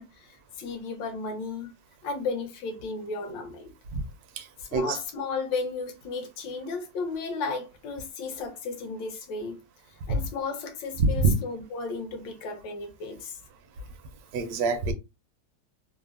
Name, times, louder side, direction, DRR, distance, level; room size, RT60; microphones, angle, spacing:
voice 1, 0.0-1.7 2.0-3.7 4.6-9.6 9.9-13.4, left 4 dB, 75° left, 1.4 m, -34 dB
voice 2, 4.4-5.0 11.0-11.3 14.3-14.9, right 3 dB, 70° right, 0.9 m, -25 dB
3.4 x 2.0 x 2.3 m
omnidirectional pair, 2.1 m